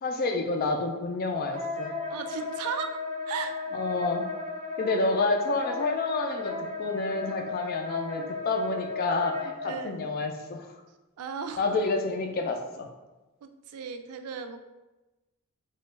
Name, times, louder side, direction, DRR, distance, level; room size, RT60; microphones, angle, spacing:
voice 1, 0.0-1.9 3.7-4.3 4.8-10.7 11.6-12.9, left 3 dB, 45° left, 4 dB, 0.3 m, -29 dB
Wind instrument woodwind instrument, 1.5-9.7, left 4 dB, 30° right, 0.5 m, -35 dB
voice 2, 2.1-3.0 3.3-3.5 9.7-10.0 11.2-11.6 13.4-14.6, right 6 dB, 90° right, 8 dB, 0.3 m, -35 dB
2.9 x 2.2 x 3.2 m, 1.1 s
head